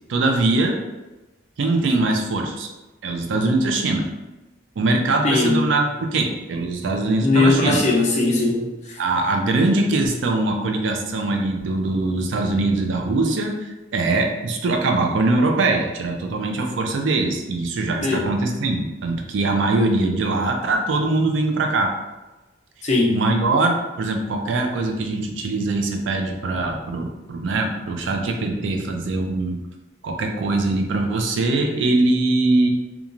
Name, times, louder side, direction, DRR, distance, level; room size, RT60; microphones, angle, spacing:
voice 1, 0.1-0.8 1.6-2.7 3.0-4.1 4.8-7.8 9.0-21.9 23.1-29.6 30.0-32.7, right 2 dB, 85° right, 3 dB, 0.4 m, -22 dB
voice 2, 5.2-5.6 7.2-9.0 18.0-18.3 22.8-23.2, left 3 dB, 40° left, -3 dB, 0.6 m, -19 dB
2.9 x 2.3 x 2.4 m, 1.1 s
head